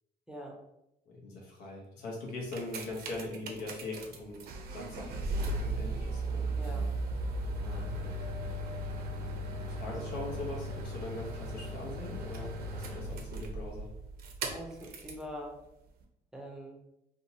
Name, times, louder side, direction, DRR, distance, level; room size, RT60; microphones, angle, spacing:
voice 1, 1.1-6.5 7.6-8.1 8.4-8.5 9.6-13.9, left 2 dB, 85° left, -1 dB, 0.8 m, -41 dB
sound 1, 2.3-15.3 16.0-16.1, right 1 dB, 65° right, 0.5 m, -37 dB
Wind, 7.6-11.2 11.8-12.8 13.6-13.7, left 1 dB, 25° left, 1.1 m, -53 dB
voice 2, 14.5-15.6 16.3-16.8, equal, 5° right, -1 dB, 0.5 m, -43 dB
2.7 x 2.2 x 2.7 m, 0.85 s
cardioid pair, 110°, 17 cm